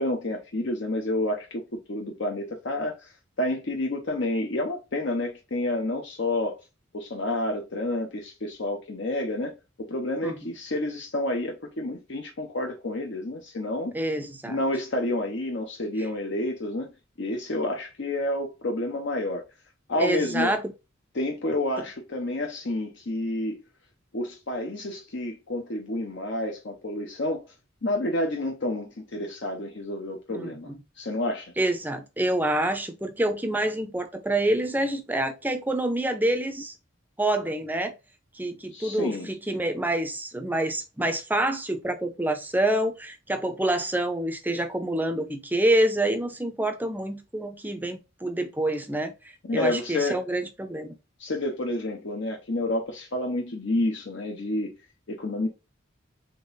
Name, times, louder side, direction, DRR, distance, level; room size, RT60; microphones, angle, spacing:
voice 1, 0.0-6.6 6.9-14.0 14.5-16.9 17.2-19.4 19.9-20.5 21.1-23.6 24.1-27.4 27.8-31.5 38.7-39.3 49.4-50.2 51.2-54.8 55.1-55.5, left 1 dB, 60° left, 0.7 m, -29 dB
voice 2, 13.9-14.6 20.0-20.6 30.3-30.8 31.6-36.7 37.2-37.9 38.3-49.1 49.5-50.9, right 1 dB, 10° right, 0.6 m, -27 dB
3.9 x 3.4 x 3.9 m
head